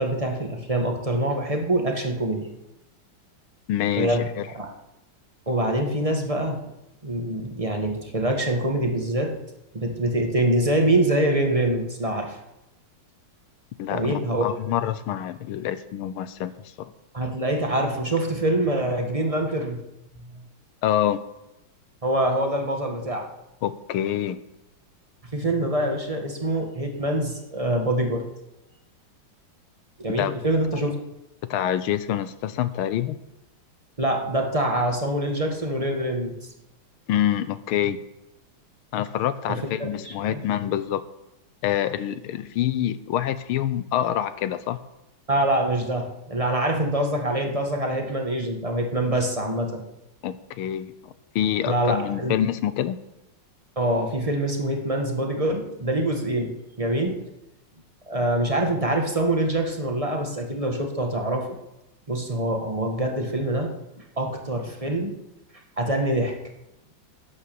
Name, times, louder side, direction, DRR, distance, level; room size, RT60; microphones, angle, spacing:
voice 1, 0.0-2.5 4.0-4.3 4.5-4.7 5.5-6.7 7.0-9.4 9.7-12.4 13.9-14.5 17.1-19.8 20.2-20.4 22.0-23.3 25.3-28.2 30.0-30.9 34.0-36.3 39.5-40.4 45.3-49.8 51.6-52.4 53.7-57.2 58.1-61.6 62.1-63.7 64.2-65.2 65.8-66.4, right 1 dB, 20° right, 2 dB, 1.5 m, -25 dB
voice 2, 3.7-4.5 13.8-16.9 20.8-21.2 23.6-24.4 30.2-30.3 31.5-33.2 37.1-38.0 38.9-41.0 41.6-44.8 50.2-53.0, left 11 dB, 80° left, 14 dB, 1.6 m, -26 dB
11.5 x 9.7 x 6.9 m, 0.92 s
omnidirectional pair, 2.4 m